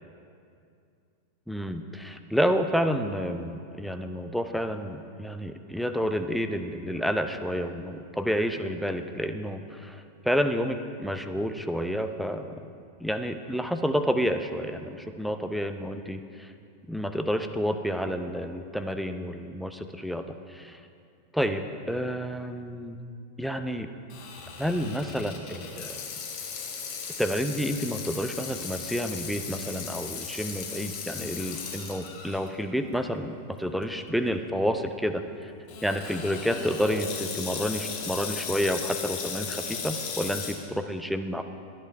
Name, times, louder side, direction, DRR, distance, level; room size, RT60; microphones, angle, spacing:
voice 1, 1.5-12.5 13.0-16.5 16.9-20.8 21.3-23.0 23.4-23.9 24.6-26.0 27.2-35.5 35.8-41.4, equal, ahead, 7 dB, 0.8 m, -29 dB
Water tap faucet / Sink (filling or washing), 24.1-32.5 33.0-33.1 33.8-34.1 35.7-40.6, left 6 dB, 45° left, 2.2 m, -37 dB
13.5 x 10.5 x 5.5 m, 2.4 s
figure-of-eight pair, 90°, 0 cm